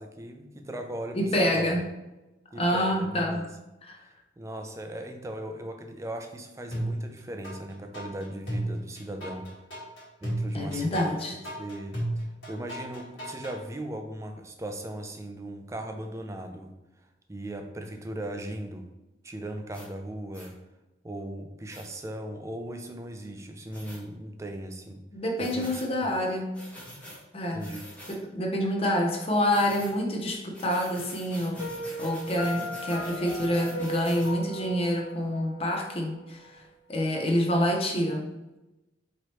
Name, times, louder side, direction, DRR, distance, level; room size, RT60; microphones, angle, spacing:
voice 1, 0.0-1.7 2.5-3.5 4.0-9.5 10.2-11.1 11.6-16.7 17.3-18.9 19.2-20.6 21.0-25.0 25.4-26.1 27.5-27.8, right 1 dB, 15° right, 5 dB, 0.4 m, -38 dB
voice 2, 1.1-1.8 2.5-3.4 3.8-4.0 10.5-11.3 25.1-26.6 27.3-27.6 28.1-31.6 32.0-36.6 36.9-38.3, left 1 dB, 30° left, 2 dB, 0.6 m, -27 dB
sound 1, 6.7-7.6 7.9-13.6, right 1 dB, 65° left, 1.5 m, -33 dB
sound 2, 19.7-19.9 20.3-20.5 21.7-21.9 23.7-24.0 25.4-25.9 26.5-27.2 27.6-28.2 29.5-30.0 30.5-34.3, equal, 10° left, 0.9 m, -45 dB
Piano, 31.6-36.5, right 1 dB, 80° left, 1.0 m, -37 dB
4.5 x 3.0 x 3.0 m, 1.0 s
head